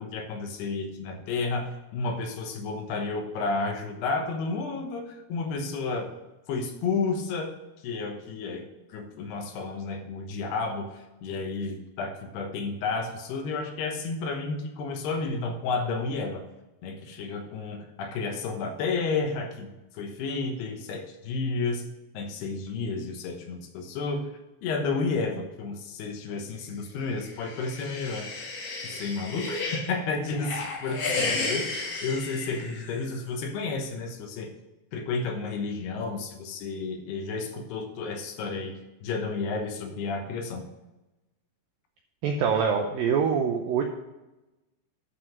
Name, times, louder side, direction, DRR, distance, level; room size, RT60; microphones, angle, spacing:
voice 1, 0.0-6.1 6.5-7.5 7.8-16.4 16.8-21.8 22.1-24.3 24.6-28.3 28.8-34.5 34.9-38.7 39.0-40.7, left 4 dB, 75° left, 4 dB, 3.0 m, -31 dB
sound 1, 27.2-29.9 30.3-33.2, left 3 dB, 55° left, 3.9 m, -33 dB
voice 2, 42.2-43.8, right 6 dB, 80° right, 4 dB, 2.0 m, -24 dB
12.0 x 5.1 x 5.9 m, 1.0 s
omnidirectional pair, 5.0 m